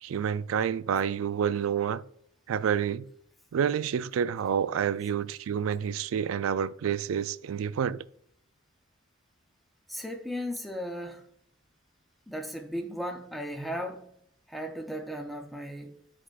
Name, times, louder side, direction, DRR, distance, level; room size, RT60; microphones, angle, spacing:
voice 1, 0.0-2.0 2.5-3.1 3.5-8.0, right 8 dB, 85° right, 0.3 m, -28 dB
voice 2, 9.9-11.3 12.3-14.1 14.5-16.0, equal, ahead, 0.5 m, -36 dB
11.0 x 4.8 x 2.4 m
head